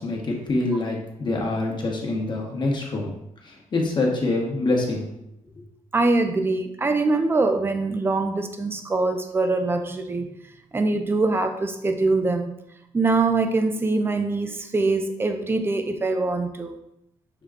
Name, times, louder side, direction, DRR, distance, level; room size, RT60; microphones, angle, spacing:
voice 1, 0.0-3.1 3.4-5.1, left 2 dB, 35° left, -1 dB, 1.0 m, -25 dB
voice 2, 5.9-10.3 10.7-12.5 12.9-16.8, right 3 dB, 20° right, 6 dB, 0.4 m, -23 dB
6.5 x 2.2 x 3.6 m, 0.82 s
cardioid pair, 120°, 13 cm